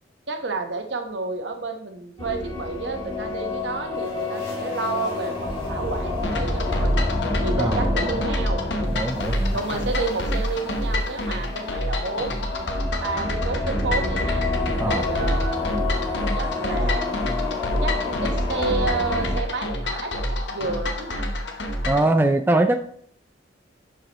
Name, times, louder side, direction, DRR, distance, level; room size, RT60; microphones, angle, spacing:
voice 1, 0.3-7.0 7.4-8.6 9.5-12.4 13.0-14.5 14.8-15.6 16.4-17.2 17.8-20.2 20.5-21.2, right 3 dB, 70° right, 4 dB, 1.0 m, -30 dB
sound 1, 2.2-19.4, left 2 dB, 30° left, 2.2 m, -29 dB
sound 2, 6.2-22.1, left 1 dB, 70° left, 1.0 m, -27 dB
voice 2, 7.6-8.1 8.9-9.6 14.8-15.0 21.8-22.8, right 2 dB, 10° right, 6 dB, 0.3 m, -22 dB
10.5 x 4.8 x 3.0 m, 0.62 s
head